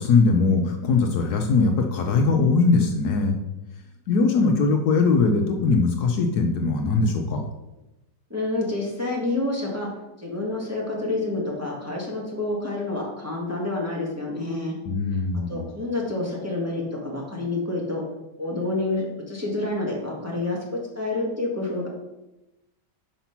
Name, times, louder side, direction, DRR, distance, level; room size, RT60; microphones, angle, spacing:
voice 1, 0.0-3.4 4.1-7.4 14.9-15.7, left 4 dB, 70° left, 4 dB, 1.2 m, -21 dB
voice 2, 8.3-9.9 10.2-14.7 15.1-15.2 15.5-18.0 18.4-21.9, left 2 dB, 10° right, -3 dB, 1.3 m, -28 dB
5.8 x 5.0 x 5.7 m, 0.97 s
omnidirectional pair, 1.9 m